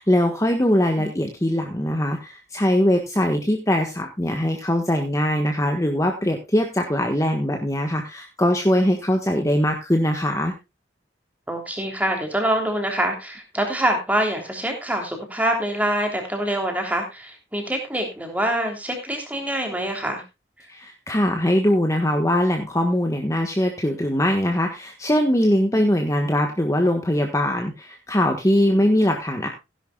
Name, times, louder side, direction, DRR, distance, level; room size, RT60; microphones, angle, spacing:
voice 1, 0.0-10.5 20.7-29.5, left 1 dB, 15° left, 3 dB, 1.4 m, -21 dB
voice 2, 11.5-20.2 25.5-25.9 28.7-28.9, right 1 dB, 10° right, 3 dB, 3.2 m, -25 dB
16.5 x 11.0 x 2.3 m, 0.25 s
head